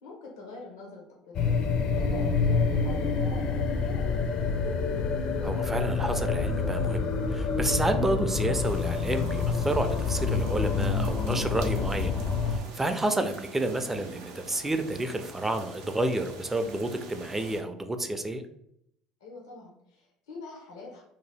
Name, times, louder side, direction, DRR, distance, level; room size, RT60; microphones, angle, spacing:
voice 1, 0.0-4.2 19.2-21.0, left 3 dB, 90° left, -2 dB, 0.7 m, -45 dB
sound 1, 1.3-12.6, left 5 dB, 50° left, 0.5 m, -27 dB
voice 2, 5.4-12.1 12.5-18.4, right 1 dB, 15° right, 7 dB, 0.4 m, -30 dB
sound 2, 8.6-17.6, right 4 dB, 80° right, 0.5 m, -46 dB
2.7 x 2.1 x 3.3 m, 0.76 s
hypercardioid pair, 75°, 2 cm